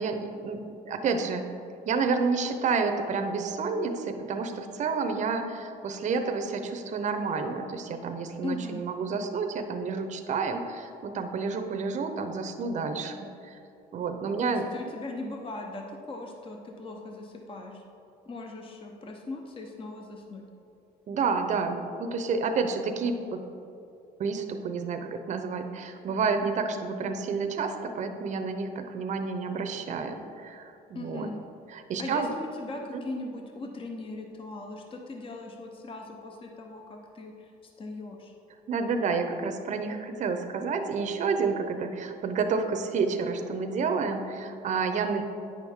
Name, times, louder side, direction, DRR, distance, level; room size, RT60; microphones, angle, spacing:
voice 1, 0.0-1.5 1.8-13.6 13.9-14.7 21.1-23.4 24.2-31.3 31.7-32.3 32.9-33.0 38.7-45.2, right 4 dB, 45° right, 6 dB, 0.7 m, -30 dB
voice 2, 8.4-8.8 14.4-17.8 18.3-20.4 30.9-31.4 32.0-38.3, left 2 dB, 30° left, 2 dB, 0.8 m, -39 dB
9.2 x 6.2 x 3.6 m, 2.7 s
cardioid pair, 110°, 17 cm